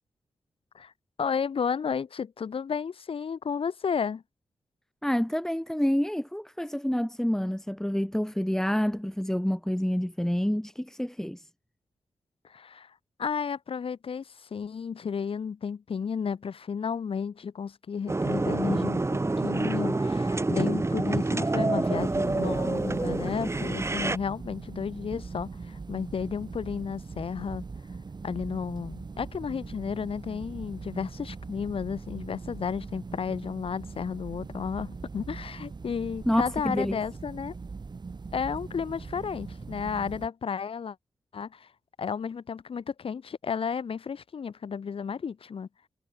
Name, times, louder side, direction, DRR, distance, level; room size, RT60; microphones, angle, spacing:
voice 1, 1.2-4.2 12.4-12.9 13.2-27.6 28.2-37.5 38.3-41.0 41.3-41.7 42.0-45.7, left 6 dB, 65° left, 1.8 m, -33 dB
voice 2, 5.0-11.5 36.3-37.0, equal, 5° left, 3.5 m, -28 dB
sound 1, 18.1-24.2, right 2 dB, 25° right, 3.7 m, -27 dB
sound 2, 21.9-40.3, right 4 dB, 45° right, 4.0 m, -41 dB
cardioid pair, 70°, 10 cm